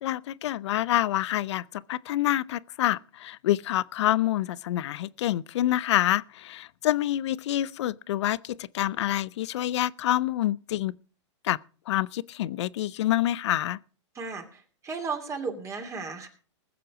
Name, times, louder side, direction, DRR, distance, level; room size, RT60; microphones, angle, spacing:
voice 1, 0.0-10.9 11.4-11.6 11.9-13.8, left 13 dB, 65° left, 0.6 m, -27 dB
voice 2, 14.1-16.3, right 4 dB, 20° right, 2.7 m, -35 dB
20.0 x 7.7 x 4.9 m
hypercardioid pair, 125°, 16 cm